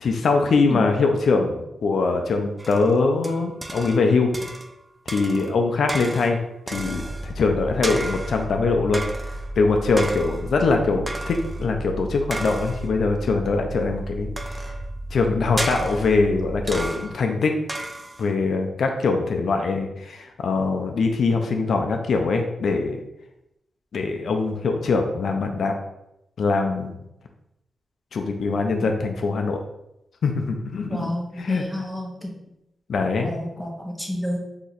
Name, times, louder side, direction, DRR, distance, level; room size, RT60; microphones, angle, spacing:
voice 1, 0.0-4.3 5.1-6.4 6.7-9.0 9.6-14.6 15.1-17.5 18.2-23.0 23.9-25.7 26.4-27.0 28.1-29.6 30.2-31.1 31.4-31.6 32.9-33.3, left 4 dB, 70° left, 4 dB, 0.4 m, -22 dB
sound 1, 2.6-4.1 4.3-4.8 5.1-7.4 7.8-8.5 8.9-9.5 10.0-10.6 11.1-11.6 12.3-13.0 14.4-14.9 15.6-16.3 16.7-17.3 17.7-18.3, right 1 dB, 20° right, 0.4 m, -33 dB
sound 2, 6.7-16.9, right 1 dB, 40° left, 0.8 m, -34 dB
voice 2, 30.9-32.4 33.2-34.4, equal, ahead, -1 dB, 0.8 m, -30 dB
2.8 x 2.5 x 4.1 m, 0.86 s
cardioid pair, 100°, 0 cm